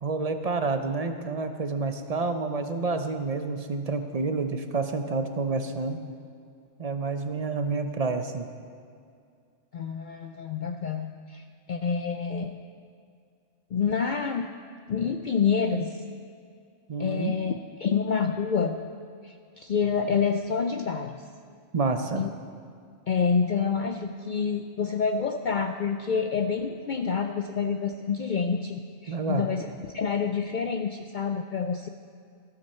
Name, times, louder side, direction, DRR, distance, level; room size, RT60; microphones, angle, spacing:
voice 1, 0.0-6.0 6.8-8.5 16.9-17.3 21.7-22.3 29.1-29.5, right 4 dB, 40° right, 7 dB, 0.7 m, -29 dB
voice 2, 9.7-12.6 13.7-14.5 14.9-16.0 17.0-18.8 19.2-21.2 22.2-22.3 23.1-31.9, left 6 dB, 60° left, 6 dB, 0.5 m, -28 dB
14.5 x 13.0 x 4.3 m, 2.3 s
omnidirectional pair, 1.2 m